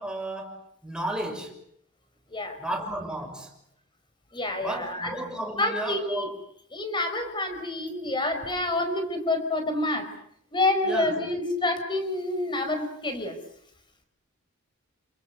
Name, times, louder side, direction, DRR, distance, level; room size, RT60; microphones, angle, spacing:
voice 1, 0.0-1.5 2.6-3.5 4.6-6.3 10.8-11.1, right 1 dB, 5° right, 5.6 m, -33 dB
voice 2, 4.3-5.2 5.6-6.3 6.7-10.1 10.5-13.4, left 2 dB, 20° left, 5.0 m, -28 dB
29.0 x 27.5 x 6.7 m
head